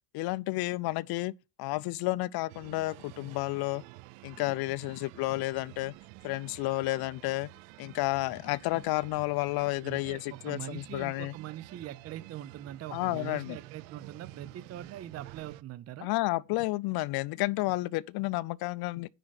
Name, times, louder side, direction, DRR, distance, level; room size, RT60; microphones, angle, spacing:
voice 1, 0.1-1.3 1.6-3.8 4.2-5.9 6.2-7.5 7.8-11.3 12.9-13.6 16.0-19.1, left 20 dB, 60° left, 0.5 m, -31 dB
sound 1, 2.5-15.6, right 18 dB, 85° right, 0.6 m, -50 dB
voice 2, 9.8-16.1, right 12 dB, 35° right, 0.5 m, -42 dB
10.5 x 5.0 x 4.0 m
cardioid pair, 125°, 44 cm